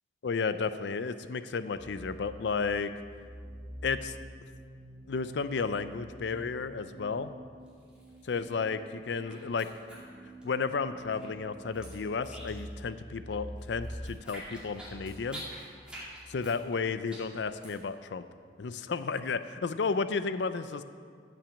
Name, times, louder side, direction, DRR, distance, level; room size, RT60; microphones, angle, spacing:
voice 1, 0.2-2.9 3.8-4.2 5.1-7.3 8.2-9.7 10.4-15.4 16.3-18.2 18.6-20.8, left 5 dB, 75° left, 12 dB, 0.5 m, -32 dB
sound 1, 1.8-17.3, equal, 50° right, 3.5 m, -47 dB
sound 2, 7.7-8.7 8.9-10.7 11.0-12.8 13.1-17.9, right 1 dB, 5° right, 2.4 m, -47 dB
14.0 x 5.9 x 7.0 m, 2.1 s
head